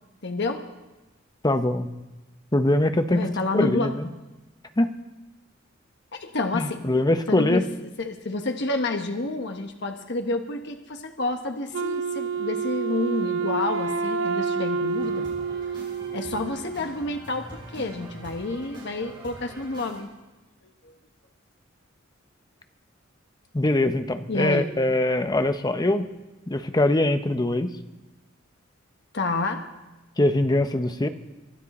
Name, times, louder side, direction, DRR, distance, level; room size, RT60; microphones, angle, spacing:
voice 1, 0.2-0.6 3.1-3.9 6.1-6.9 7.3-7.7 8.0-15.3 16.1-20.1 24.3-24.7 29.1-29.6, left 2 dB, 60° left, 5 dB, 1.2 m, -29 dB
voice 2, 1.4-1.9 2.5-3.2 3.5-4.1 4.8-4.9 6.5-7.6 23.5-26.1 26.5-27.7 30.2-31.1, left 1 dB, 20° left, 8 dB, 0.8 m, -22 dB
Wind instrument woodwind instrument, 11.7-16.7, right 5 dB, 80° right, 0.7 m, -28 dB
sound 1, 14.9-20.0, right 1 dB, 25° right, 6.3 m, -44 dB
24.0 x 12.5 x 4.2 m, 1.1 s
head